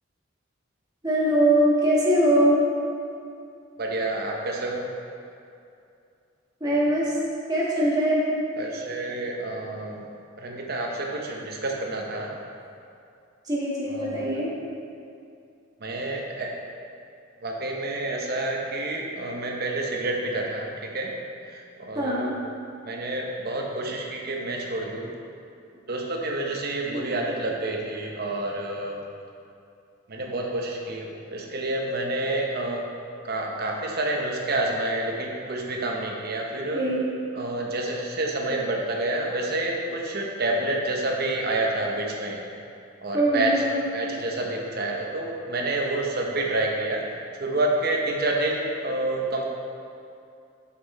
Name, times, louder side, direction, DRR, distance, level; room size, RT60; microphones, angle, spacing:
voice 1, 1.0-2.6 6.6-7.1 7.5-8.2 13.5-14.5 21.9-22.3 26.9-27.1 36.7-37.1 43.1-43.8, right 1 dB, 20° right, -7 dB, 1.5 m, -22 dB
voice 2, 3.8-4.9 8.6-10.1 10.4-12.4 13.9-14.3 15.8-16.5 17.4-21.1 21.5-22.5 22.8-25.1 25.9-29.0 30.1-32.8 33.2-36.9 37.3-42.4 43.0-43.6 43.9-47.0 47.3-49.4, right 2 dB, 50° right, 0 dB, 0.9 m, -28 dB
6.2 x 5.8 x 4.2 m, 2.5 s
head